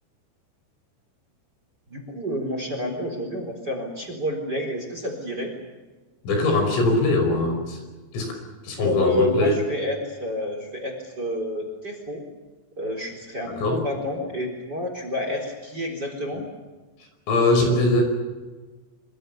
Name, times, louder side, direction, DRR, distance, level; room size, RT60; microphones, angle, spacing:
voice 1, 1.9-5.5 8.8-12.2 12.8-16.5, left 1 dB, 20° right, 4 dB, 3.9 m, -29 dB
voice 2, 6.2-7.8 8.1-8.4 8.6-9.6 13.4-13.8 17.3-18.0, left 2 dB, 75° left, 5 dB, 7.9 m, -21 dB
26.0 x 25.0 x 7.0 m, 1.3 s
omnidirectional pair, 5.9 m